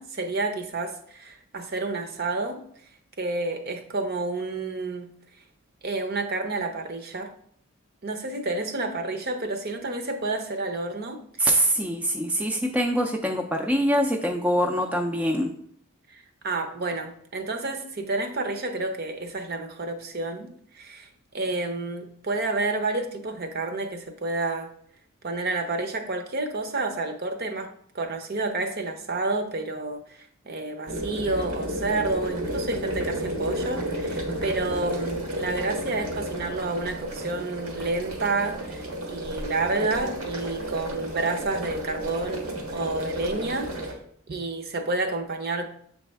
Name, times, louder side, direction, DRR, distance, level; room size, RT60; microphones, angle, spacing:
voice 1, 0.0-2.6 3.2-5.1 5.8-7.3 8.0-11.6 16.1-24.7 25.2-27.7 27.9-43.9 44.3-45.7, right 2 dB, 45° right, 6 dB, 0.7 m, -30 dB
voice 2, 11.4-15.5, equal, 5° right, 2 dB, 0.4 m, -24 dB
sound 1, 30.9-43.9, right 1 dB, 90° right, 1.4 m, -32 dB
7.1 x 4.1 x 3.5 m, 0.65 s
head